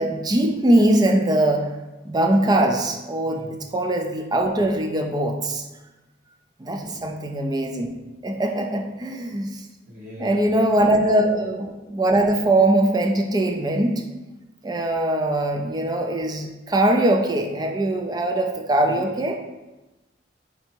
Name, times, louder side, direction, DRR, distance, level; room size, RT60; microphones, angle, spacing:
voice 1, 0.0-1.7 2.1-5.6 6.6-7.9 8.2-9.6 10.2-14.0 14.6-19.4, right 1 dB, 20° right, 3 dB, 0.4 m, -21 dB
voice 2, 3.3-3.6 6.7-7.2 9.9-10.8 18.8-19.1, left 1 dB, 45° right, -6 dB, 1.1 m, -41 dB
4.4 x 2.7 x 4.4 m, 1.1 s
head